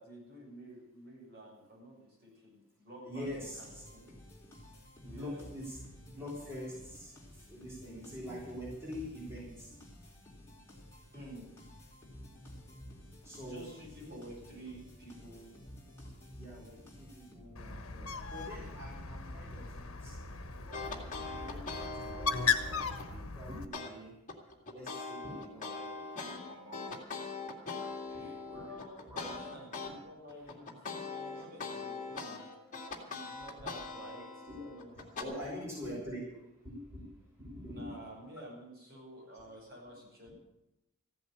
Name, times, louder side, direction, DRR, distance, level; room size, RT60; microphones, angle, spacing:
voice 1, 0.0-3.3 3.6-3.7 3.9-4.1 5.0-5.4 11.1-11.5 13.4-15.5 17.4-17.7 26.4-27.2 28.1-32.4 33.1-34.3 34.6-35.6 37.6-40.3, right 1 dB, 45° right, -4 dB, 7.0 m, -51 dB
voice 2, 3.0-3.8 5.0-5.8 6.0-9.8 13.2-13.7 14.1-14.2 16.3-19.7 20.0-20.2 20.5-24.1 24.7-26.3 28.1-29.5 30.3-30.5 31.3-31.5 33.3-33.8 34.5-36.4 36.6-37.1 37.4-38.0 38.3-38.4 39.3-39.5, equal, 15° right, -6 dB, 5.9 m, -45 dB
sound 1, 3.2-17.8, left 1 dB, 10° left, 4.5 m, -53 dB
Bird, 17.6-23.7, left 5 dB, 70° left, 1.3 m, -37 dB
sound 2, 20.7-23.1 23.7-23.9 24.3-29.9 30.3-35.2, left 4 dB, 35° left, 2.2 m, -41 dB
15.0 x 8.1 x 9.2 m, 0.91 s
head